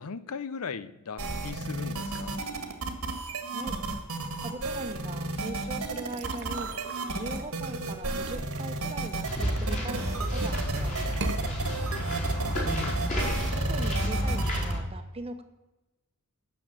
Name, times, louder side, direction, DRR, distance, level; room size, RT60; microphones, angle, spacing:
voice 1, 0.0-2.4 12.2-13.0, left 5 dB, 80° left, 0.6 m, -39 dB
sound 1, 1.2-14.7, right 3 dB, 80° right, 1.7 m, -33 dB
voice 2, 4.4-6.7 7.1-11.6 13.5-15.4, right 2 dB, 25° right, 1.0 m, -40 dB
sound 2, 6.0-9.9 10.3-10.7 11.1-11.4, right 3 dB, 55° right, 0.9 m, -40 dB
sound 3, 9.2-14.8, equal, 30° left, 3.6 m, -30 dB
9.6 x 7.0 x 7.6 m
head